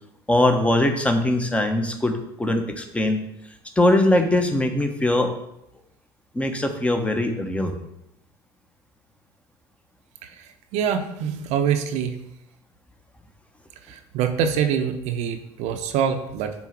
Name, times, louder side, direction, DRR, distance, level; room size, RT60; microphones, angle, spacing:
voice 1, 0.3-3.2 3.8-5.3 6.3-7.7, left 1 dB, 10° left, 6 dB, 1.1 m, -21 dB
voice 2, 10.7-12.1 13.9-16.5, right 8 dB, 65° right, 6 dB, 0.7 m, -24 dB
6.0 x 3.9 x 5.9 m, 0.82 s
hypercardioid pair, 80°, 12 cm